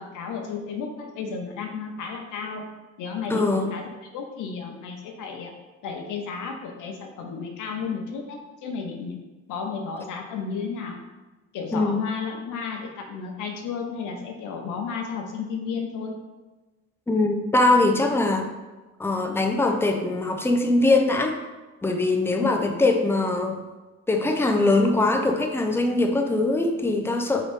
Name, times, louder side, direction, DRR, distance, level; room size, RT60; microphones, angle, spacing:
voice 1, 0.0-2.7 3.0-3.9 4.1-5.5 5.8-9.2 9.5-11.0 11.5-16.2 22.4-22.8, left 5 dB, 85° left, 3 dB, 0.7 m, -33 dB
voice 2, 3.3-3.7 11.7-12.0 17.1-18.5 19.0-21.4 21.8-23.6 24.1-27.4, left 2 dB, 10° left, 3 dB, 0.4 m, -22 dB
3.8 x 2.6 x 3.5 m, 1.2 s
cardioid pair, 90°, 30 cm